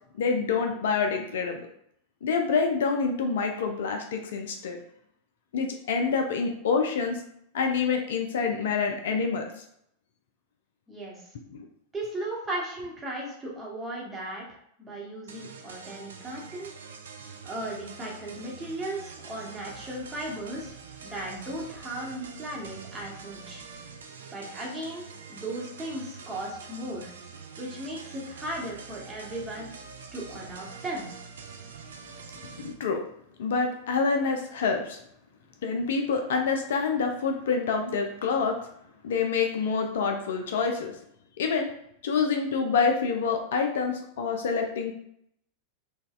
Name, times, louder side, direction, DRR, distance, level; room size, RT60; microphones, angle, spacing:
voice 1, 0.2-1.6 2.2-4.8 5.5-7.2 7.5-9.5 11.5-11.7 32.6-33.0 33.4-35.0 35.6-38.6 39.0-40.9 41.4-41.7 42.0-44.9, left 5 dB, 60° left, 4 dB, 0.3 m, -27 dB
voice 2, 10.9-11.2 11.9-14.4 14.8-16.7 17.4-20.8 21.0-23.6 24.3-27.1 27.6-29.7 30.1-31.1, right 1 dB, 10° right, -4 dB, 1.0 m, -36 dB
sound 1, 15.3-32.7, right 5 dB, 65° right, 0.3 m, -45 dB
3.9 x 2.2 x 2.3 m, 0.72 s
figure-of-eight pair, 90°, 0 cm